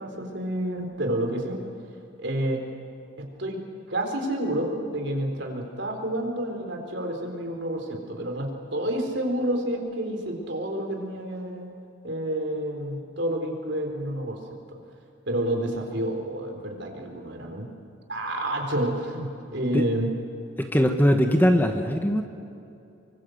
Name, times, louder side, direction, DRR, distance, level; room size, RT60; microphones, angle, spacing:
voice 1, 0.0-1.6 2.2-2.6 3.2-3.6 3.9-11.7 12.0-14.4 14.7-14.8 15.3-17.7 18.1-20.1, right 1 dB, 60° right, 3 dB, 4.1 m, -29 dB
voice 2, 20.6-22.2, equal, 10° left, 5 dB, 1.3 m, -21 dB
26.0 x 24.0 x 8.0 m, 2.6 s
head